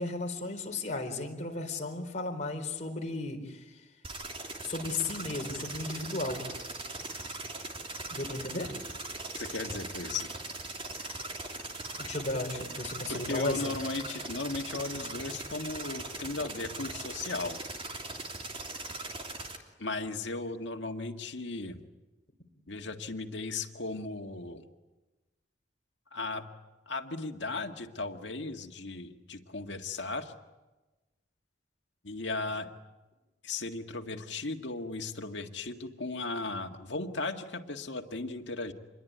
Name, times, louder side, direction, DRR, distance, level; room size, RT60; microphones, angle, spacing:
voice 1, 0.0-3.6 4.6-6.4 8.1-8.7 12.0-13.7, left 2 dB, 40° left, 3 dB, 4.3 m, -34 dB
sound 1, 4.0-19.6, right 2 dB, 30° right, 3.2 m, -40 dB
voice 2, 9.3-10.3 13.1-17.6 19.8-21.8 22.7-24.6 26.1-26.5 26.9-30.3 32.0-32.7 33.4-38.7, left 3 dB, 80° left, 5 dB, 1.9 m, -36 dB
27.0 x 21.5 x 9.4 m, 1.2 s
head